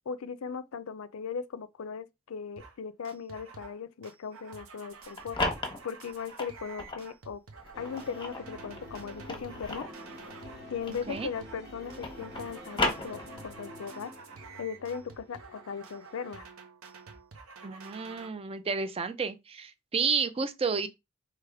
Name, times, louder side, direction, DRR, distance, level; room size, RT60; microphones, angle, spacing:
voice 1, 0.1-5.4 5.8-7.4 7.8-9.9 10.7-14.1 14.6-16.4, left 6 dB, 75° left, 0.5 m, -38 dB
sound 1, 2.6-2.8 3.0-10.6 10.9-11.6 11.9-18.3, right 5 dB, 90° right, 1.0 m, -50 dB
sound 2, 4.9-7.1 7.6-11.4 11.7-13.7, left 2 dB, 25° left, 0.9 m, -35 dB
sound 3, 7.7-16.3, equal, 50° right, 1.6 m, -48 dB
voice 2, 17.6-20.9, right 5 dB, 25° right, 0.4 m, -31 dB
3.5 x 3.3 x 4.7 m
head